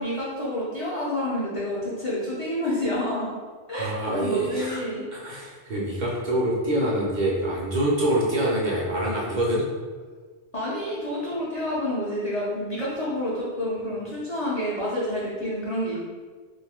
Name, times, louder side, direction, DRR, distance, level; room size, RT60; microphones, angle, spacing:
voice 1, 0.0-3.3 3.7-5.1 10.5-16.0, left 1 dB, 40° left, -8 dB, 0.5 m, -28 dB
voice 2, 3.7-4.8 5.1-9.7, right 1 dB, 50° right, -4 dB, 0.7 m, -25 dB
2.7 x 2.4 x 3.5 m, 1.5 s
omnidirectional pair, 1.1 m